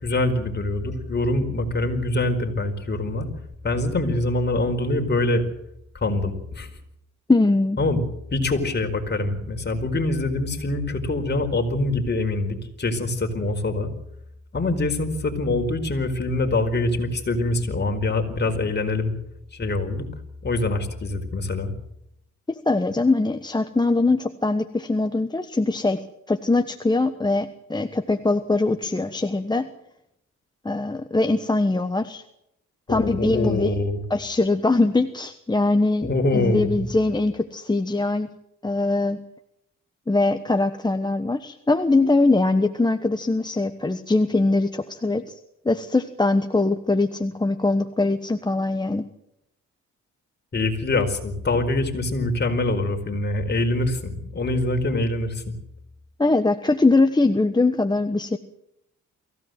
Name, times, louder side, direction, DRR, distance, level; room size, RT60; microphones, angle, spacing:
voice 1, 0.0-3.3 3.6-5.4 6.0-6.7 7.8-8.1 8.3-13.9 14.5-19.1 19.5-20.1 20.4-21.7 32.9-34.0 36.0-36.8 50.5-55.5, left 2 dB, 35° left, 4 dB, 4.6 m, -24 dB
voice 2, 7.3-7.8 22.5-26.0 26.3-29.7 30.6-32.2 32.9-33.7 34.1-38.3 38.6-39.2 40.1-45.4 45.6-49.0 56.2-58.4, left 2 dB, 15° left, 7 dB, 1.2 m, -22 dB
23.5 x 16.5 x 7.9 m, 0.81 s
cardioid pair, 90°, 30 cm